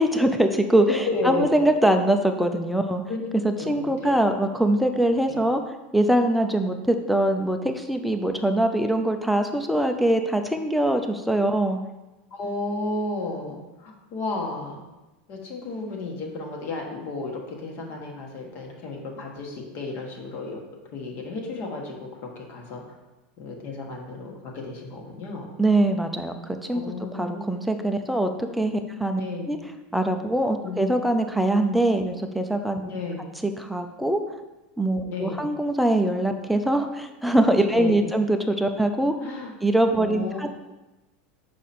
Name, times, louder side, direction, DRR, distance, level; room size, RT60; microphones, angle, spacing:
voice 1, 0.0-3.0 3.4-5.6 5.9-11.8 25.6-29.2 29.5-29.6 29.9-32.8 33.4-34.2 34.8-39.1 39.6-40.5, right 1 dB, ahead, 5 dB, 0.5 m, -23 dB
voice 2, 0.9-1.6 3.1-3.2 3.6-4.3 5.3-5.4 12.3-14.8 15.3-20.6 20.9-22.0 22.2-23.0 23.4-25.5 26.7-27.6 29.1-29.6 30.6-30.8 32.8-33.2 35.0-35.4 37.7-38.0 39.2-39.5 39.9-40.5, left 3 dB, 40° left, 0 dB, 1.5 m, -33 dB
6.6 x 5.0 x 4.3 m, 1.0 s
supercardioid pair, 160°, 5 cm